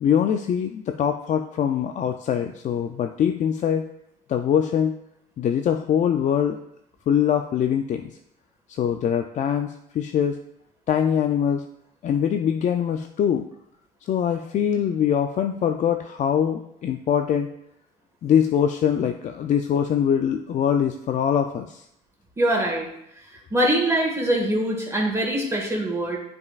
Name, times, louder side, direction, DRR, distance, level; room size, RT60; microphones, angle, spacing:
voice 1, 0.0-3.9 4.3-5.0 5.4-6.6 7.1-8.1 8.7-10.4 10.9-11.6 12.0-13.5 14.1-17.5 18.2-21.8, left 8 dB, 45° left, 6 dB, 0.4 m, -23 dB
voice 2, 22.4-22.9 23.5-26.2, right 1 dB, 15° right, -2 dB, 1.7 m, -23 dB
9.5 x 5.3 x 2.4 m, 0.78 s
cardioid pair, 110°, 17 cm